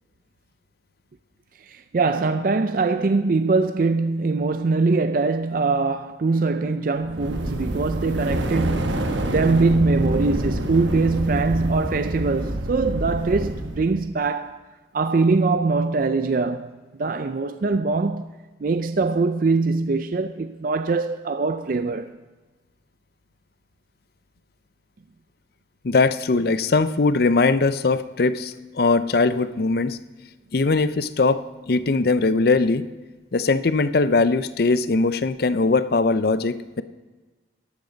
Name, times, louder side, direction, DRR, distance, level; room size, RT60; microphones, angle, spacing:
voice 1, 1.6-14.7 14.9-16.7 17.0-18.3 18.6-22.2, right 3 dB, 50° right, 0.4 m, -22 dB
sound 1, 7.0-14.0, right 1 dB, 80° right, 1.2 m, -27 dB
voice 2, 25.8-30.0 30.5-32.9 33.3-36.8, left 3 dB, 55° left, 0.5 m, -20 dB
13.5 x 12.0 x 3.9 m
head